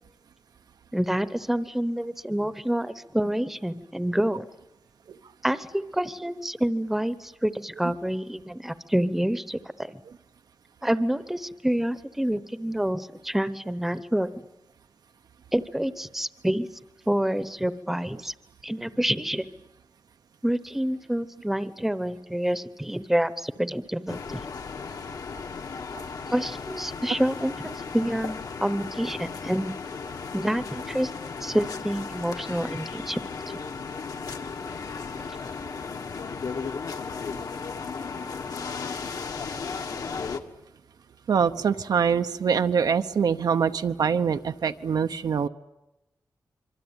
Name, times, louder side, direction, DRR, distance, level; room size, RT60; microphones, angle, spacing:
voice 1, 0.9-4.5 5.4-9.9 10.8-14.4 15.5-16.7 17.1-18.3 18.6-19.5 20.4-24.4 26.3-29.7 30.3-31.1 31.4-33.2 33.5-33.6, right 1 dB, 5° right, 13 dB, 0.9 m, -27 dB
sound 1, 24.1-40.4, left 5 dB, 65° left, 1.6 m, -35 dB
voice 2, 41.3-45.5, right 6 dB, 75° right, 9 dB, 0.9 m, -24 dB
25.5 x 24.0 x 8.9 m, 0.95 s
wide cardioid pair, 175°, 7 cm